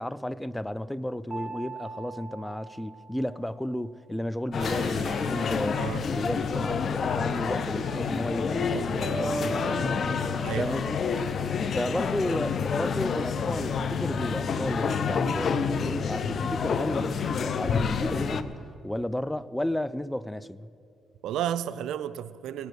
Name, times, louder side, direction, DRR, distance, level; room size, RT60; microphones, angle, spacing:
voice 1, 0.0-10.2 10.6-11.0 11.7-18.5 18.8-20.7, left 1 dB, 5° left, 0.4 m, -33 dB
sound 1, 1.3-3.6 5.0-6.1 7.1-8.3 9.0-11.4, right 3 dB, 25° right, 2.9 m, -40 dB
sound 2, 4.5-18.4, left 6 dB, 50° left, 0.7 m, -28 dB
sound 3, 4.6-6.6, right 3 dB, 40° right, 2.0 m, -48 dB
voice 2, 10.4-10.7 21.2-22.7, right 10 dB, 80° right, 0.4 m, -32 dB
18.0 x 8.1 x 6.8 m
cardioid pair, 90°, 0 cm